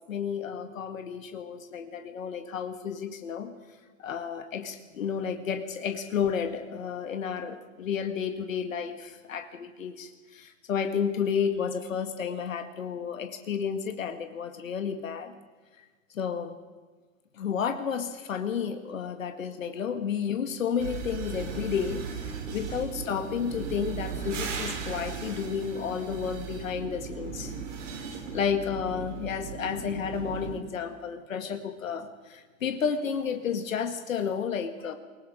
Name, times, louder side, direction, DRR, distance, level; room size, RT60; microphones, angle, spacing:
voice 1, 0.1-3.5 4.0-15.3 16.1-16.5 17.4-27.5 28.3-34.9, left 7 dB, 70° left, 7 dB, 2.0 m, -31 dB
sound 1, 20.8-30.6, right 5 dB, 60° right, 5.1 m, -37 dB
28.5 x 19.5 x 5.1 m, 1.4 s
hypercardioid pair, 120°, 41 cm